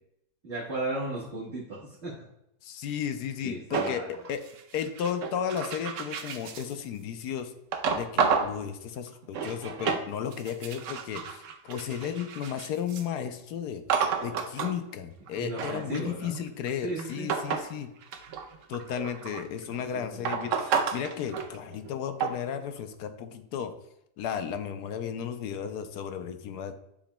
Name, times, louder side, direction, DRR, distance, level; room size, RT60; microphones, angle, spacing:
voice 1, 0.4-2.2 3.4-4.1 15.3-16.4 16.8-17.3 19.7-20.3, right 2 dB, 45° right, -5 dB, 1.5 m, -36 dB
voice 2, 2.6-4.4 4.7-7.5 7.9-13.8 14.2-17.9 18.7-23.7 24.2-26.7, left 8 dB, 85° left, 9 dB, 1.2 m, -34 dB
sound 1, 3.7-6.7 7.7-8.6 9.1-10.0 10.3-13.0 13.9-14.7 15.3-17.7 18.0-19.6 20.2-21.9 22.2-22.5, right 6 dB, 65° right, 0.9 m, -31 dB
10.0 x 5.0 x 2.2 m, 0.79 s
omnidirectional pair, 1.7 m